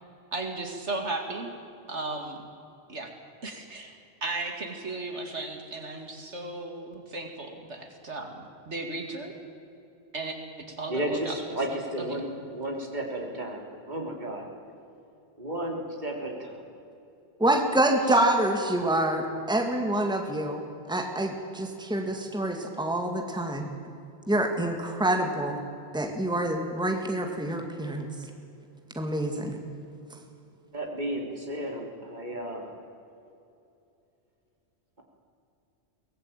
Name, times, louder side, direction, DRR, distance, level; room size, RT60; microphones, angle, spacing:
voice 1, 0.3-1.5 1.9-2.4 2.9-3.1 3.4-9.3 10.1-11.4 12.0-12.2, right 2 dB, 75° right, 4 dB, 2.7 m, -35 dB
voice 2, 10.9-14.5 15.4-16.5 30.7-32.7, right 1 dB, 40° right, 1 dB, 3.8 m, -33 dB
voice 3, 17.4-20.6 20.9-23.7 24.3-25.6 25.9-28.1 29.0-29.6 30.1-30.2, right 1 dB, 5° right, 3 dB, 2.2 m, -26 dB
23.0 x 19.0 x 9.0 m, 2.7 s
omnidirectional pair, 1.2 m